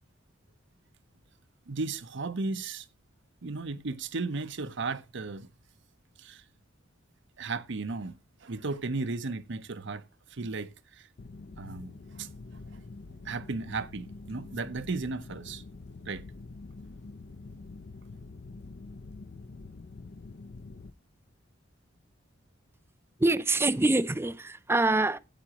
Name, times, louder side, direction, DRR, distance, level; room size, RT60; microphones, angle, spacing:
voice 1, 1.7-2.9 3.4-5.5 6.2-6.4 7.4-8.2 8.4-10.0 10.3-11.1 11.6-12.3 13.2-15.6 16.0-16.2, right 3 dB, 65° right, 0.8 m, -35 dB
sound 1, 11.2-20.9, left 3 dB, 55° left, 0.6 m, -46 dB
voice 2, 23.2-25.2, right 2 dB, 10° right, 0.5 m, -25 dB
13.0 x 8.7 x 2.9 m
head